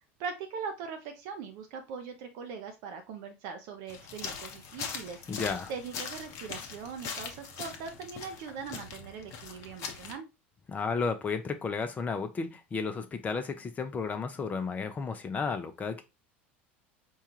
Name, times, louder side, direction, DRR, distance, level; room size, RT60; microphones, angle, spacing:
voice 1, 0.2-5.2 5.7-10.3, right 6 dB, 60° right, 6 dB, 0.5 m, -41 dB
sound 1, 3.9-10.1, left 6 dB, 50° left, 0.8 m, -41 dB
voice 2, 5.3-5.7 10.7-16.0, left 5 dB, 25° left, 7 dB, 0.5 m, -33 dB
4.5 x 2.3 x 2.9 m, 0.26 s
hypercardioid pair, 80°, 6 cm